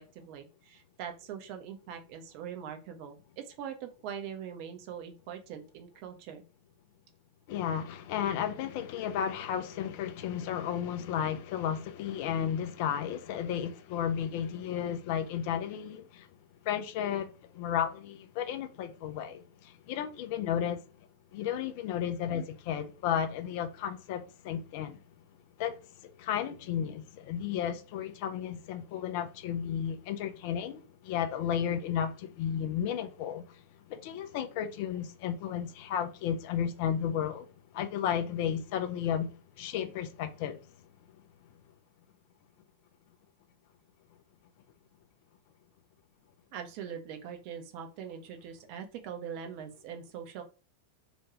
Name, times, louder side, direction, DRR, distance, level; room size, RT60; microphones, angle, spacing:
voice 1, 0.0-6.4 22.3-22.5 46.5-50.4, right 8 dB, 45° right, 0.5 m, -42 dB
voice 2, 7.5-16.3 16.6-20.8 21.3-25.0 25.6-37.5 37.7-40.6, left 9 dB, 45° left, 0.4 m, -33 dB
2.5 x 2.2 x 2.9 m
figure-of-eight pair, 90°, 0 cm